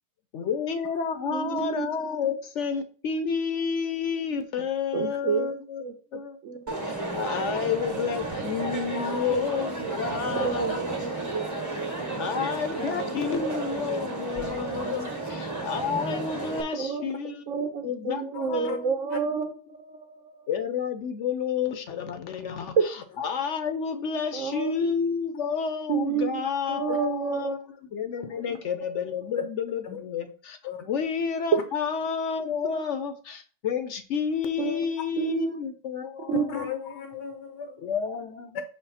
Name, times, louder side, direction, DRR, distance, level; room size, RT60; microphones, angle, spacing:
voice 1, 0.3-5.8 6.1-6.4 6.8-10.8 12.2-15.1 15.4-17.4 17.8-19.4 20.5-22.7 23.2-27.6 27.9-36.4 37.8-38.6, left 6 dB, 55° left, 8 dB, 0.9 m, -30 dB
voice 2, 1.3-1.9 4.9-5.5 5.8-5.9 6.4-6.7 7.3-7.4 9.3-9.6 10.3-11.3 16.7-20.5 22.7-22.9 24.3-24.7 25.9-26.4 26.7-27.6 32.7-32.9 34.6-34.9 35.2-35.5 36.2-36.4, right 6 dB, 65° right, 6 dB, 0.8 m, -29 dB
Crowd, 6.7-16.6, right 3 dB, 15° right, 0.8 m, -32 dB
voice 3, 8.9-9.2 10.1-10.2 14.9-15.1 18.3-18.8 19.1-19.2 26.9-27.0 28.2-28.6 29.4-29.5 29.8-30.0 30.6-30.8 36.3-37.9 38.5-38.6, left 7 dB, 75° left, 7 dB, 1.3 m, -35 dB
5.6 x 3.2 x 5.6 m, 0.40 s
omnidirectional pair, 1.9 m